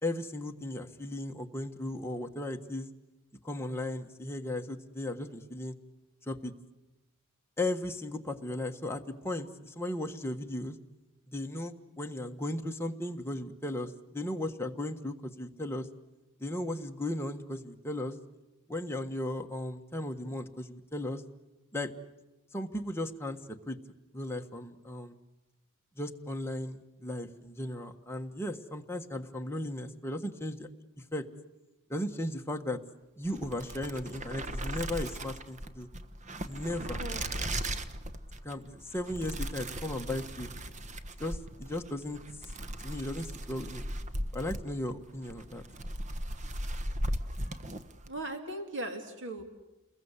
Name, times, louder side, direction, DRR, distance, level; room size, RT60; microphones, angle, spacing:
voice 1, 0.0-2.9 3.4-5.7 6.3-6.5 7.6-10.8 11.3-15.9 16.4-18.1 18.7-21.2 21.7-21.9 22.5-23.8 24.1-25.2 26.0-30.7 31.1-31.2 31.9-32.8 33.2-35.9 36.5-37.0 38.4-40.5 41.2-42.2 42.8-43.9 44.3-45.6, left 1 dB, 10° left, 3 dB, 1.4 m, -36 dB
sound 1, 33.2-48.2, right 1 dB, 35° right, 1.2 m, -38 dB
voice 2, 36.8-37.2 48.1-49.4, right 1 dB, 60° right, 5 dB, 3.0 m, -38 dB
29.0 x 21.5 x 8.2 m, 1.0 s
head